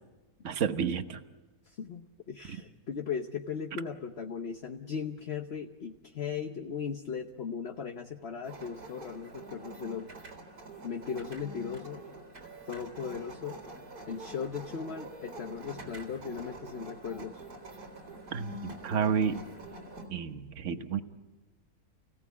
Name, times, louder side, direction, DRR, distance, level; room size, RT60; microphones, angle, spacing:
voice 1, 0.4-1.2 2.5-2.6 18.3-19.4 20.1-21.0, right 7 dB, 55° right, 9 dB, 1.4 m, -31 dB
voice 2, 1.7-10.1 10.8-12.0 12.7-13.6 14.1-17.4, left 6 dB, 50° left, 5 dB, 1.2 m, -37 dB
sound 1, 8.4-20.1, right 1 dB, 85° right, 4.5 m, -46 dB
30.0 x 17.0 x 8.5 m, 1.2 s
omnidirectional pair, 1.6 m